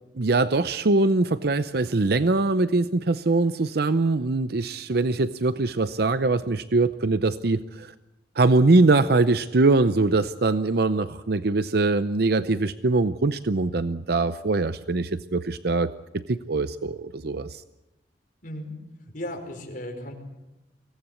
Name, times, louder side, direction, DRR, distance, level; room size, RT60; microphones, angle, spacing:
voice 1, 0.2-7.9 8.4-17.6, right 3 dB, 65° right, 12 dB, 0.7 m, -22 dB
voice 2, 18.4-18.7 19.0-20.1, left 1 dB, 50° left, 3 dB, 4.9 m, -35 dB
24.0 x 17.5 x 8.4 m, 0.99 s
head